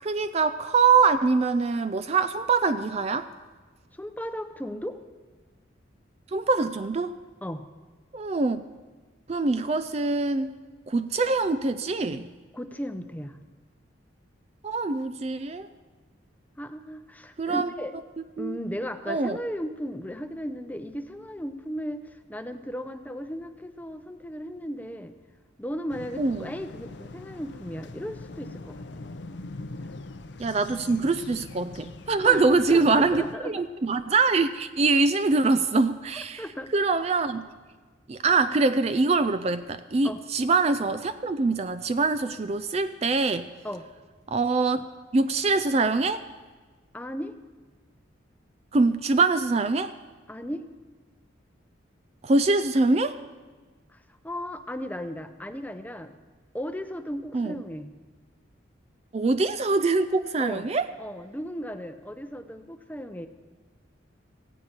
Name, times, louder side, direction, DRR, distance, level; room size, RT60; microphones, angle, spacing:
voice 1, 0.0-3.3 6.3-7.2 8.1-8.6 9.3-10.5 10.9-12.3 14.6-15.7 17.4-17.7 18.4-18.6 19.1-19.4 26.2-26.5 30.4-36.4 36.7-37.5 38.1-43.5 44.3-44.9 45.1-46.2 48.7-49.9 52.2-53.2 57.3-57.6 59.1-60.9, right 3 dB, 35° right, 11 dB, 0.4 m, -24 dB
voice 2, 3.9-5.0 7.4-7.6 12.5-13.4 16.6-18.0 18.4-25.1 25.6-28.8 32.2-32.4 32.7-33.5 36.1-36.7 40.0-40.2 43.6-43.9 46.9-47.3 50.3-50.6 53.9-54.0 54.2-56.2 56.5-57.9 60.4-60.7 61.0-63.3, equal, 10° left, 8 dB, 0.7 m, -35 dB
sound 1, 25.9-33.4, left 2 dB, 65° left, 0.7 m, -42 dB
18.0 x 15.5 x 4.4 m, 1.4 s
head